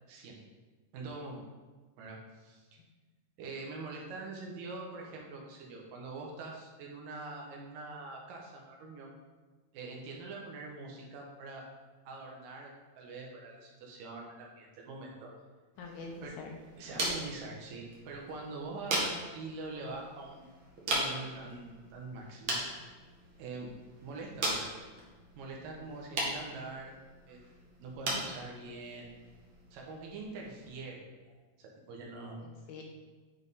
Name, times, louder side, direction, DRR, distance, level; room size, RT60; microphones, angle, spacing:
voice 1, 0.1-0.4 0.9-1.4 2.0-2.8 3.4-9.1 9.7-11.7 12.1-15.3 16.2-16.4 16.8-20.5 20.9-22.6 23.4-23.7 24.0-24.7 25.4-26.9 27.3-27.5 27.8-29.1 29.7-32.4, right 3 dB, 80° right, -1 dB, 2.7 m, -44 dB
sound 1, 15.7-30.8, right 1 dB, 50° right, 1.6 m, -39 dB
voice 2, 15.8-16.5 16.9-17.1 32.4-32.8, left 3 dB, 75° left, 0 dB, 2.0 m, -45 dB
9.6 x 3.5 x 4.0 m, 1.3 s
omnidirectional pair, 3.9 m